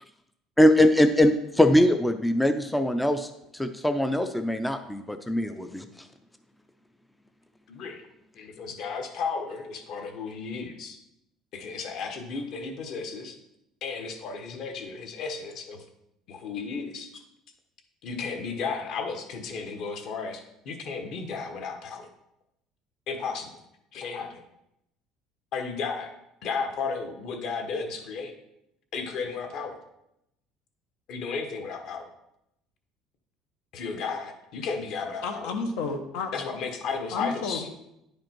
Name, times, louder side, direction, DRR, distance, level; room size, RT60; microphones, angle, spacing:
voice 1, 0.6-5.8, left 1 dB, 5° left, 8 dB, 0.3 m, -22 dB
voice 2, 7.7-8.0 8.3-11.0 11.5-13.4 13.8-15.8 16.3-17.2 18.0-22.1 23.1-23.5 23.9-24.4 25.5-26.1 26.4-28.3 28.9-29.8 31.1-32.1 33.7-35.5 36.3-37.7, left 5 dB, 50° left, 5 dB, 1.2 m, -34 dB
voice 3, 35.2-36.3 37.1-37.7, left 4 dB, 85° left, 5 dB, 1.2 m, -31 dB
10.0 x 5.1 x 4.5 m, 0.82 s
cardioid pair, 170°, 0 cm